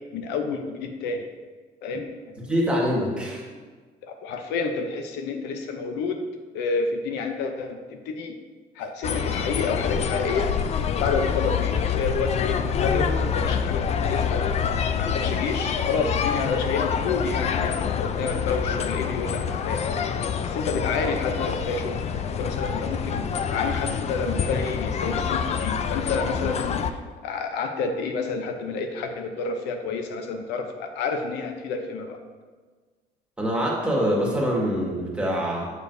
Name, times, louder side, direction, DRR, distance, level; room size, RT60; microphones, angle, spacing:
voice 1, 0.1-1.3 1.8-2.1 4.0-6.2 6.5-8.3 8.7-10.5 11.0-14.4 14.9-22.0 22.2-32.2, left 4 dB, 90° left, 5 dB, 0.7 m, -29 dB
voice 2, 2.5-3.4 33.4-35.7, equal, 5° right, -4 dB, 1.6 m, -24 dB
sound 1, 9.0-26.9, left 7 dB, 40° left, 0.4 m, -26 dB
7.0 x 6.4 x 2.6 m, 1.4 s
cardioid pair, 110°, 17 cm